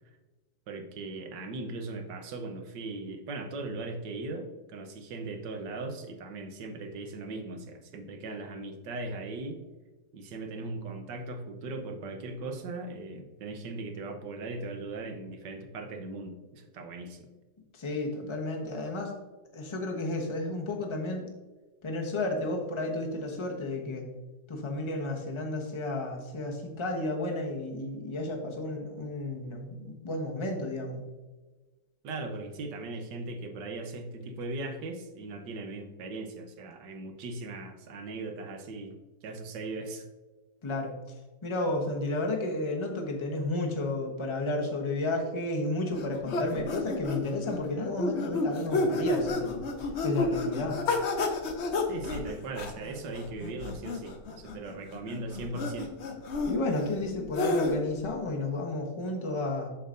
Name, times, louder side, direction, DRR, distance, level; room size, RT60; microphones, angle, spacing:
voice 1, 0.7-9.6 10.1-17.2 32.0-38.9 39.2-40.1 51.9-55.9, right 2 dB, 65° right, 5 dB, 1.4 m, -38 dB
voice 2, 17.7-19.1 19.5-21.3 21.8-24.1 24.5-31.0 40.6-40.9 41.4-49.6 50.0-50.8 56.5-59.7, left 2 dB, 25° left, 1 dB, 0.7 m, -32 dB
sound 1, 45.9-58.0, left 3 dB, 60° left, 0.7 m, -31 dB
7.7 x 6.8 x 2.6 m, 1.2 s
omnidirectional pair, 2.2 m